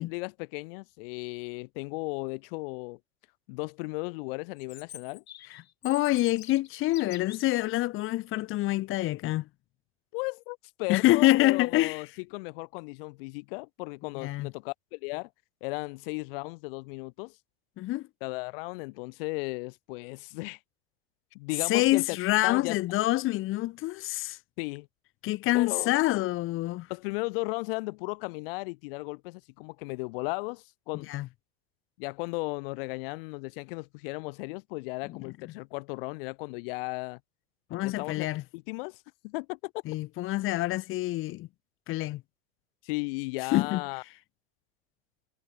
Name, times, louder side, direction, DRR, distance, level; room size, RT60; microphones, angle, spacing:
voice 1, 0.0-3.0 3.5-5.2 10.1-12.1 12.3-15.3 15.6-17.4 18.2-20.6 21.3-22.0 22.4-22.8 24.6-24.9 25.5-25.9 26.9-31.1 32.0-37.2 37.8-38.3 38.5-39.7 42.8-44.0, left 27 dB, 65° left, 1.3 m, -35 dB
Chirp tweet, 4.6-7.6, left 11 dB, 90° left, 7.1 m, -47 dB
voice 2, 5.5-9.5 10.9-12.0 14.2-14.5 17.8-18.1 21.7-24.4 25.2-26.9 30.9-31.3 35.1-35.3 37.7-38.4 39.8-41.5 41.9-42.2 43.5-43.8, left 17 dB, 40° left, 1.3 m, -26 dB
supercardioid pair, 110°, 31 cm